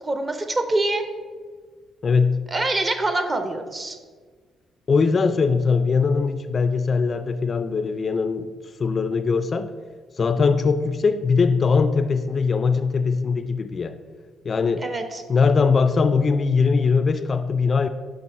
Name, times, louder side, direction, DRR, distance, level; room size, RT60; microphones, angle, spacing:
voice 1, 0.0-1.0 2.5-4.0 14.8-15.2, right 2 dB, 30° right, 7 dB, 0.7 m, -25 dB
voice 2, 2.0-2.5 4.9-8.5 8.8-9.7 10.2-14.0 14.4-14.8 15.3-17.9, left 5 dB, 40° left, 11 dB, 0.3 m, -21 dB
6.2 x 3.2 x 5.3 m, 1.5 s
cardioid pair, 90°, 0 cm